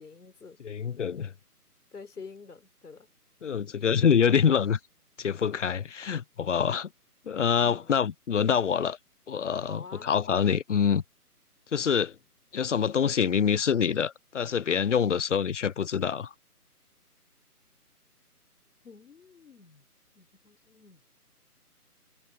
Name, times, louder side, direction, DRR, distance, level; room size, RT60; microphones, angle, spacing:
voice 1, 0.0-0.6 1.9-3.1 7.6-8.0 9.7-10.1 18.8-19.8 20.1-21.0, left 4 dB, 70° left, 4.2 m, -48 dB
voice 2, 0.6-1.3 3.4-4.8 5.2-6.9 7.3-9.0 9.3-11.0 11.7-12.1 12.5-16.3, left 7 dB, 55° left, 0.5 m, -25 dB
figure-of-eight pair, 155°, 47 cm